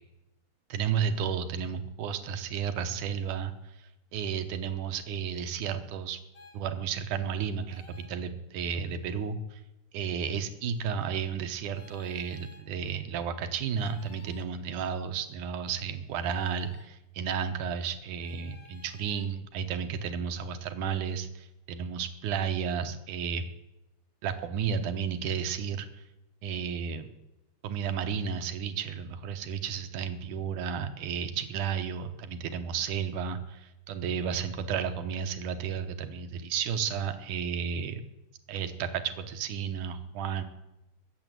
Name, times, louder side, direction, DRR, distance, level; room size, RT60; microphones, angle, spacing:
voice 1, 0.7-3.5 3.8-6.2 6.5-9.6 9.9-23.4 24.2-26.0 26.4-27.1 27.6-38.0 38.5-40.4, right 7 dB, 65° right, 9 dB, 2.3 m, -32 dB
sound 1, 6.3-6.6 7.7-8.2 10.2-10.3 11.7-12.7 13.7-14.5 16.2-16.9 18.2-19.3, left 2 dB, 50° left, 2.5 m, -54 dB
20.5 x 7.6 x 9.2 m, 0.95 s
omnidirectional pair, 4.4 m